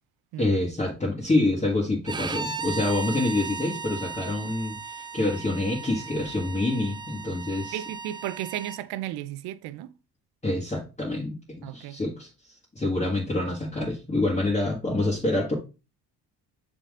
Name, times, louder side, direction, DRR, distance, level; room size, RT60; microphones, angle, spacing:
voice 1, 0.4-7.8 10.4-12.3 12.7-15.5, left 2 dB, 20° left, 1.8 m, -27 dB
Bowed string instrument, 2.0-8.8, right 5 dB, 15° right, 0.3 m, -36 dB
voice 2, 7.7-9.9 11.6-12.0, right 13 dB, 80° right, 0.6 m, -34 dB
6.6 x 3.9 x 3.7 m
cardioid pair, 85°, 38 cm